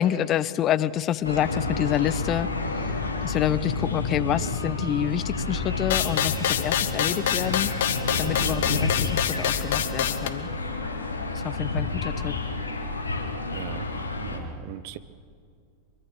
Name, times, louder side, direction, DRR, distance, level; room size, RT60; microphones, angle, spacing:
voice 1, 0.0-7.7 8.2-10.5 11.3-12.4, left 11 dB, 30° left, 0.7 m, -28 dB
sound 1, 1.2-14.4, left 3 dB, 75° left, 2.5 m, -30 dB
sound 2, 5.9-10.3, left 10 dB, 55° left, 1.2 m, -26 dB
voice 2, 13.5-15.0, right 12 dB, 45° right, 1.0 m, -39 dB
24.5 x 23.5 x 6.4 m
figure-of-eight pair, 90°, 0 cm